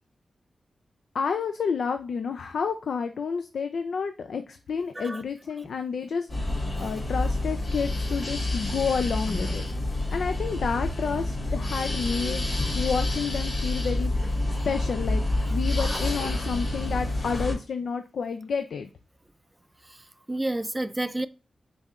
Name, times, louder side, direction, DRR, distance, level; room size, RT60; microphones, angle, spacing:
voice 1, 1.1-9.7 10.1-14.3 14.7-15.2 15.5-18.9, left 6 dB, 85° left, 0.4 m, -30 dB
sound 1, 6.3-17.5, left 1 dB, 50° left, 2.7 m, -28 dB
voice 2, 20.3-21.3, right 1 dB, 15° right, 0.3 m, -30 dB
5.4 x 4.1 x 2.4 m
wide cardioid pair, 100°, 0 cm